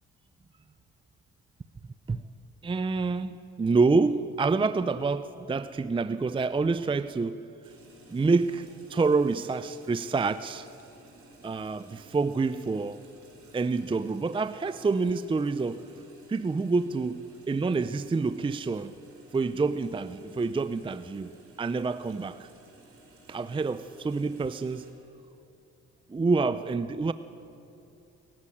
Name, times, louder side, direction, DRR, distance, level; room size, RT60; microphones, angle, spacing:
voice 1, 2.6-7.4 8.1-10.7 11.4-13.0 13.5-15.9 16.3-18.9 19.3-21.3 21.6-22.5 23.3-24.9 26.1-27.1, right 4 dB, 15° right, 13 dB, 0.5 m, -27 dB
sound 1, 7.6-24.9, right 2 dB, 50° right, 4.8 m, -55 dB
19.5 x 15.0 x 9.9 m, 2.8 s
cardioid pair, 90°, 30 cm